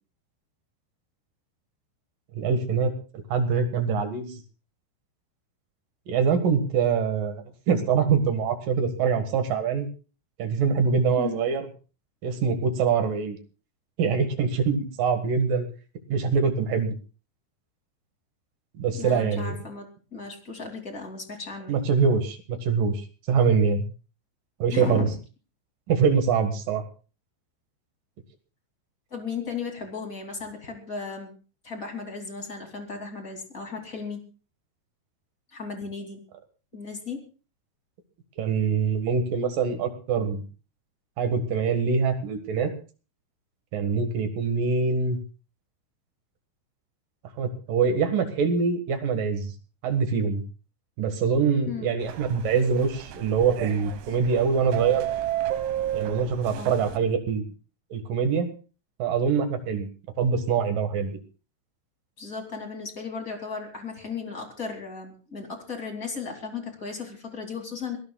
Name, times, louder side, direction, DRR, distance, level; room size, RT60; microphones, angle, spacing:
voice 1, 2.4-4.4 6.1-9.9 10.4-11.7 12.2-13.4 14.0-15.7 16.1-16.9 18.8-19.6 21.7-23.0 23.3-23.8 24.6-25.1 25.9-26.8 38.4-40.4 41.2-42.7 43.7-45.2 47.4-49.5 49.8-50.4 51.0-55.1 55.9-57.4 57.9-58.5 59.0-59.9 60.2-61.1, right 5 dB, 60° right, 6 dB, 2.6 m, -24 dB
voice 2, 19.0-21.8 24.7-25.2 29.1-31.3 31.6-34.2 35.5-36.2 36.7-37.2 51.7-51.9 56.6-56.7 62.2-68.0, left 5 dB, 25° left, 3 dB, 2.0 m, -35 dB
sound 1, 52.0-57.0, right 12 dB, 75° right, 3.5 m, -32 dB
25.0 x 17.5 x 2.3 m, 0.36 s
omnidirectional pair, 5.6 m